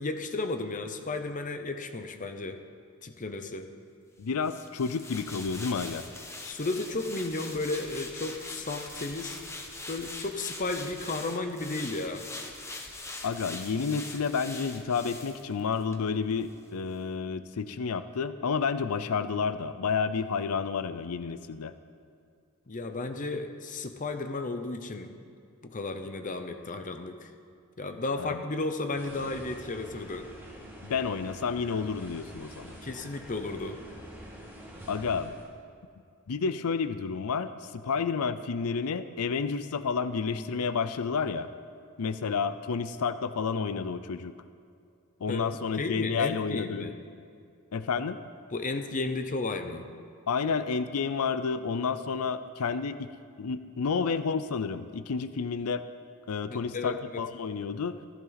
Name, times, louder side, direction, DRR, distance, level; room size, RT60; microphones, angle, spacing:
voice 1, 0.0-2.6 3.0-3.7 6.4-9.4 9.9-12.2 22.7-25.1 25.6-27.3 27.8-30.3 32.8-33.8 45.3-47.0 48.5-49.9 56.5-57.2, left 3 dB, 35° left, 7 dB, 0.8 m, -33 dB
voice 2, 4.2-6.1 13.2-21.7 28.2-28.4 30.8-32.8 34.9-35.3 36.3-41.5 42.0-44.3 45.2-46.9 47.7-48.2 50.3-53.1 53.4-55.8 56.3-58.0, left 5 dB, 90° left, 12 dB, 0.5 m, -30 dB
sound 1, 4.4-16.0 16.3-16.5, left 2 dB, 15° left, 1.1 m, -42 dB
sound 2, 29.0-35.5, right 1 dB, 10° right, 1.9 m, -46 dB
14.0 x 14.0 x 4.0 m, 2.4 s
head